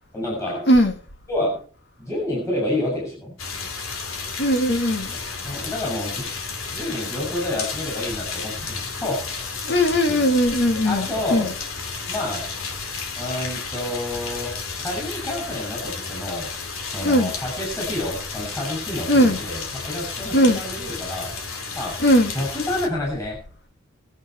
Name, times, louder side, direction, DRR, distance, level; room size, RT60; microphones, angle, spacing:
voice 1, 0.1-0.7 1.3-1.7 2.0-3.4 5.4-9.3 10.0-10.3 10.8-11.5 12.1-12.5 13.1-16.5 16.8-21.3 21.7-23.4, left 1 dB, 15° left, 6.7 m, -29 dB
sound 1, 3.4-22.9, left 4 dB, 80° left, 2.7 m, -32 dB
voice 2, 4.4-5.1 9.7-11.5 17.0-17.3 19.1-19.4 20.3-20.6 22.0-22.3, equal, 55° left, 2.3 m, -18 dB
23.0 x 7.9 x 4.6 m
head